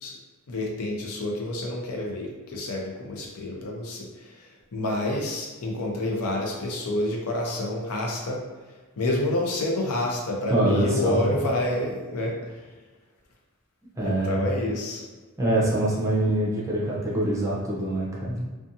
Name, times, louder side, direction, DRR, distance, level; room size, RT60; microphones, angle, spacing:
voice 1, 0.5-8.4 9.0-12.4 14.0-15.0, left 1 dB, 85° left, -1 dB, 0.6 m, -28 dB
voice 2, 10.5-11.3 14.0-14.4 15.4-18.4, right 1 dB, 15° right, -6 dB, 0.6 m, -24 dB
2.6 x 2.3 x 2.6 m, 1.3 s
head